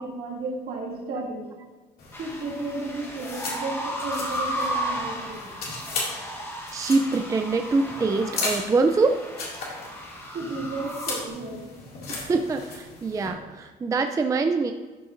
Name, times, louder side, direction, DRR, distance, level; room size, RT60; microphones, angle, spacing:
voice 1, 0.0-1.5 2.2-5.5 10.3-11.7, right 2 dB, 65° right, -2 dB, 2.3 m, -33 dB
sound 1, 2.0-13.3, left 3 dB, 65° left, 2.3 m, -37 dB
sound 2, 2.1-11.3, equal, 15° left, 1.2 m, -34 dB
voice 2, 6.7-9.1 12.1-14.7, right 3 dB, 20° right, 6 dB, 0.4 m, -24 dB
12.0 x 5.7 x 2.6 m, 1.3 s
cardioid pair, 110°, 17 cm